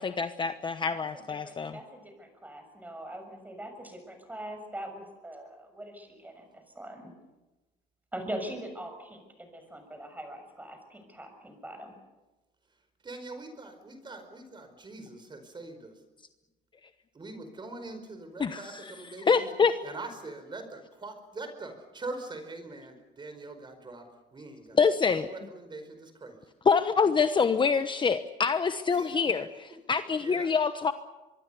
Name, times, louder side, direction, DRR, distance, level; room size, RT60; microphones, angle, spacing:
voice 1, 0.0-1.8 18.4-18.9 19.3-19.8 24.8-25.3 26.6-30.9, left 5 dB, 30° left, 10 dB, 1.1 m, -26 dB
voice 2, 0.9-7.1 8.1-11.9, right 1 dB, 10° right, 6 dB, 6.6 m, -42 dB
voice 3, 13.0-15.9 17.1-19.5 19.8-24.8 25.1-26.5 28.9-29.5 30.2-30.5, right 2 dB, 30° right, 8 dB, 4.8 m, -43 dB
24.5 x 22.0 x 7.0 m, 1.1 s
cardioid pair, 110°, 17 cm